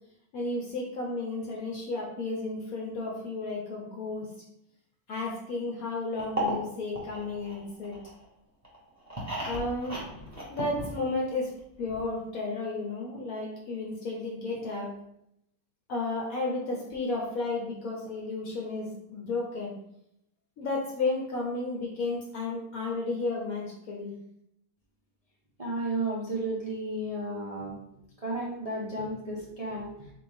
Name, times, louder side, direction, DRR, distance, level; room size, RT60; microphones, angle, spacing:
voice 1, 0.3-4.3 5.1-8.0 9.5-10.0 10.5-11.5 11.8-14.9 15.9-19.7 20.6-24.2, left 3 dB, 65° left, -1 dB, 1.1 m, -33 dB
sound 1, 6.2-8.2 8.6-11.3 11.6-11.7 11.9-12.0, right 1 dB, 10° right, 1.2 m, -35 dB
voice 2, 25.6-27.8 28.2-29.9, right 2 dB, 35° right, -5 dB, 0.5 m, -33 dB
4.0 x 3.4 x 3.4 m, 0.78 s
omnidirectional pair, 1.8 m